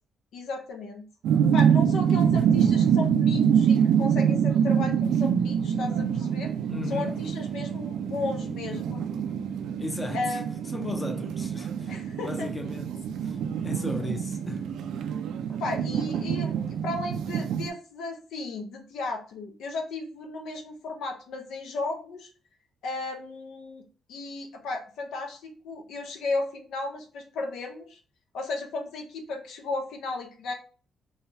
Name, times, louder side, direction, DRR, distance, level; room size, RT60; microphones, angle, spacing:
voice 1, 0.3-1.0 1.5-6.5 6.9-9.1 10.1-10.4 11.9-12.5 15.5-16.6 16.8-22.3 22.8-23.8 24.1-28.0 28.3-30.5, left 3 dB, 80° left, 0.6 m, -34 dB
sound 1, 1.2-17.7, right 8 dB, 80° right, 0.3 m, -25 dB
voice 2, 6.7-7.2 9.8-10.4 10.7-13.4 13.6-14.7 15.9-16.0, left 3 dB, 20° left, 0.6 m, -36 dB
3.3 x 2.3 x 2.7 m
cardioid pair, 90°, 0 cm